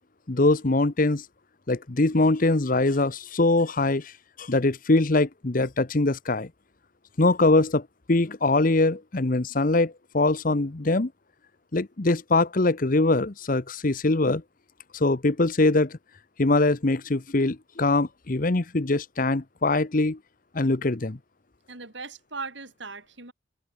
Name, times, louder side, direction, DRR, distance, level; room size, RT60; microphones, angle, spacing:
voice 1, 0.3-1.2 1.7-4.1 4.4-6.5 7.2-11.1 11.7-14.4 14.9-16.0 16.4-20.2 20.5-21.2, left 2 dB, 45° left, 0.9 m, -23 dB
voice 2, 21.7-23.3, right 4 dB, 65° right, 5.0 m, -38 dB
head